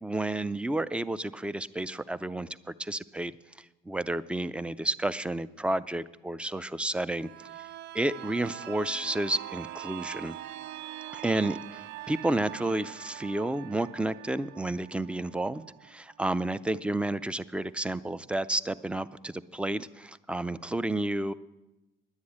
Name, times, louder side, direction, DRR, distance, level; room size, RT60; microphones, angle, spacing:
voice 1, 0.0-7.5 7.9-10.4 11.1-21.3, right 1 dB, 5° right, 15 dB, 0.4 m, -31 dB
sound 1, 7.1-16.7 17.1-17.2, right 14 dB, 80° right, 0.4 m, -43 dB
10.5 x 9.8 x 8.5 m, 1.0 s
cardioid pair, 110°, 17 cm